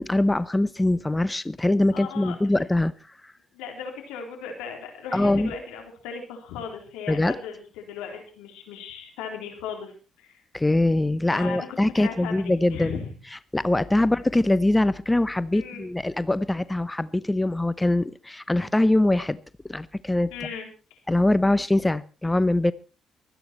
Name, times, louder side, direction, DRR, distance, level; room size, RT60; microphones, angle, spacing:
voice 1, 0.0-2.9 3.2-3.3 5.1-5.5 7.1-7.3 10.5-13.0 13.5-19.4 19.7-20.3 21.1-22.7, left 1 dB, 15° left, 16 dB, 0.8 m, -23 dB
voice 2, 1.9-2.6 3.5-9.9 10.2-10.4 11.3-11.7 12.0-13.1 15.5-15.9 20.3-21.0, left 6 dB, 80° left, 3 dB, 3.8 m, -37 dB
24.0 x 9.3 x 4.3 m, 0.35 s
hypercardioid pair, 50°, 0 cm